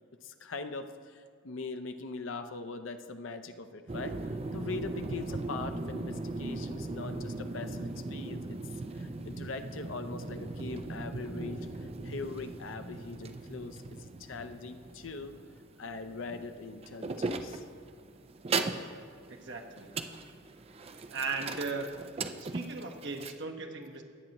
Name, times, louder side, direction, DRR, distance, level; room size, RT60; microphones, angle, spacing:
voice 1, 0.2-0.9 1.4-4.2 4.5-8.6 9.0-11.8 12.0-15.4 15.8-17.1 17.4-17.6, left 3 dB, 75° left, 8 dB, 0.6 m, -41 dB
sound 1, 3.9-23.3, right 3 dB, 30° right, 0.4 m, -39 dB
voice 2, 19.3-19.9 21.1-21.9 22.4-24.0, right 4 dB, 60° right, 3 dB, 1.1 m, -37 dB
19.0 x 7.7 x 3.0 m, 2.1 s
head